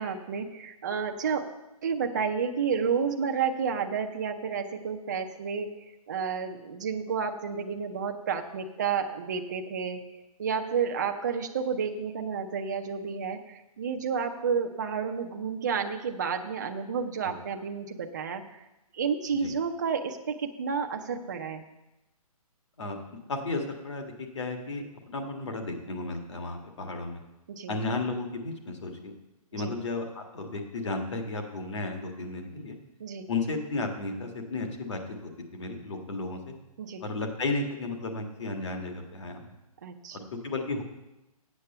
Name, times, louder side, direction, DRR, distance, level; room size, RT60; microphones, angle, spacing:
voice 1, 0.0-1.5 1.8-5.7 6.1-10.1 10.4-18.6 18.9-21.6 27.5-27.7 29.5-29.7 33.0-33.3 36.8-37.0 39.8-40.2, right 6 dB, 30° right, 5 dB, 0.5 m, -31 dB
voice 2, 22.8-27.2 27.7-29.1 29.5-32.8 33.3-36.5 37.0-39.5 40.1-40.8, left 3 dB, 50° left, 3 dB, 1.6 m, -34 dB
8.2 x 7.7 x 6.6 m, 0.97 s
hypercardioid pair, 175°, 19 cm